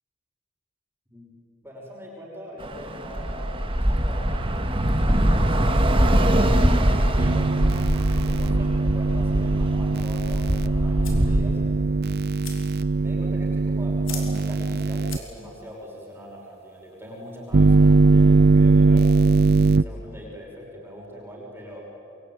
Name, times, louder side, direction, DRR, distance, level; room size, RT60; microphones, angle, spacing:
voice 1, 1.6-7.5 8.1-11.6 12.9-19.1 19.7-21.8, equal, 10° right, -3 dB, 5.7 m, -41 dB
Bus / Traffic noise roadway noise, 2.6-11.4, right 1 dB, 25° right, 1.8 m, -22 dB
sound 1, 7.2-15.2 17.5-19.8, right 3 dB, 55° right, 0.6 m, -20 dB
sound 2, 10.6-15.7, left 6 dB, 75° left, 4.5 m, -44 dB
27.5 x 23.0 x 9.6 m, 2.8 s
head